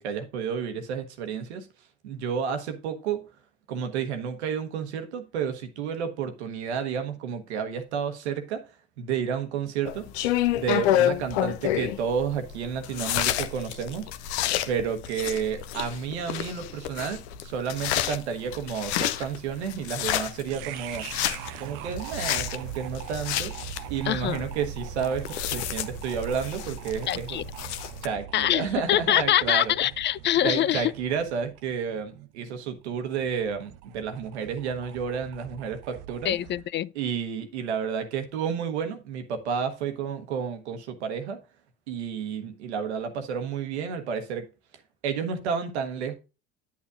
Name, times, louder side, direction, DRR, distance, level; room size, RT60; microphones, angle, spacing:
voice 1, 0.0-1.7 2.0-3.2 3.7-8.6 9.0-14.1 14.7-21.1 21.6-23.5 23.9-27.4 28.0-29.7 30.4-36.4 36.9-41.4 41.9-44.5 45.0-46.1, right 7 dB, 85° right, 1.1 m, -31 dB
sound 1, 9.9-28.1, left 12 dB, 80° left, 0.7 m, -30 dB
sound 2, 20.5-36.7, right 12 dB, 70° right, 0.6 m, -41 dB
voice 2, 24.0-24.5 27.1-27.4 28.3-30.9 36.2-36.9, left 12 dB, 35° left, 0.4 m, -24 dB
9.3 x 8.5 x 2.4 m
hypercardioid pair, 60°, 33 cm